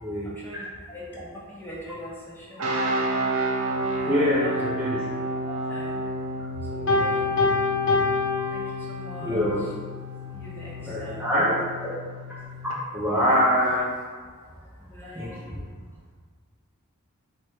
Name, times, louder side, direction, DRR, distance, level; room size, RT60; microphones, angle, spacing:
voice 1, 0.2-2.7 4.0-4.5 5.5-6.0 6.7-7.2 8.5-9.4 10.4-11.6 11.8-12.0 14.9-15.6, equal, 10° left, -6 dB, 0.8 m, -40 dB
sound 1, 2.6-12.8, right 1 dB, 85° right, 0.6 m, -31 dB
voice 2, 4.1-5.0 8.3-8.7 9.2-9.7 10.8-11.5 12.9-13.9 15.0-15.6, equal, 10° right, -8 dB, 0.4 m, -25 dB
Piano, 6.9-9.3, left 3 dB, 55° left, 0.8 m, -24 dB
4.6 x 2.2 x 4.4 m, 1.5 s
head